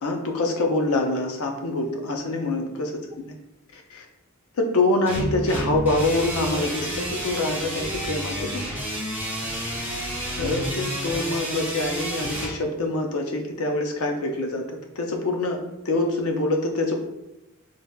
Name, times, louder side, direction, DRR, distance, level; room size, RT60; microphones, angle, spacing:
voice 1, 0.0-2.9 3.2-3.3 3.7-4.1 4.6-8.7 10.3-14.6 15.0-15.6 15.8-17.0, left 2 dB, 85° left, 2 dB, 0.6 m, -25 dB
sound 1, 5.1-12.5, equal, 10° right, 0.8 m, -30 dB
4.1 x 2.1 x 2.3 m, 0.93 s
head